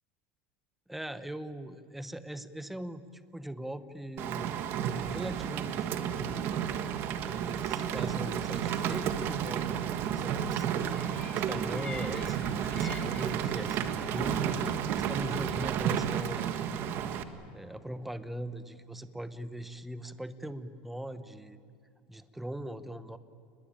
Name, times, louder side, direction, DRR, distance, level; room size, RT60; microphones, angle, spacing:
voice 1, 0.9-6.5 7.0-16.7 17.2-21.6 22.1-23.2, right 1 dB, 5° right, 12 dB, 0.9 m, -41 dB
Rain, 4.2-17.2, right 9 dB, 45° right, 1.4 m, -32 dB
sound 1, 10.9-16.3, left 4 dB, 20° left, 2.7 m, -49 dB
29.5 x 20.5 x 8.9 m, 2.5 s
supercardioid pair, 150°, 6 cm